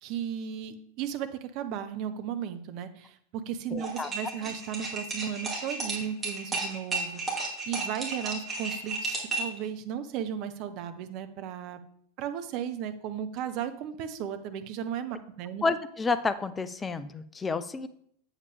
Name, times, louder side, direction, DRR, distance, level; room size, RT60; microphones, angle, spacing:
voice 1, 0.0-11.8 12.2-15.6, right 9 dB, 40° right, 9 dB, 0.7 m, -35 dB
voice 2, 3.7-4.1 15.6-17.9, left 4 dB, 15° left, 12 dB, 0.4 m, -30 dB
sound 1, 3.8-9.6, right 3 dB, 15° right, 2.3 m, -33 dB
8.2 x 7.3 x 3.4 m, 0.66 s
figure-of-eight pair, 90°, 0 cm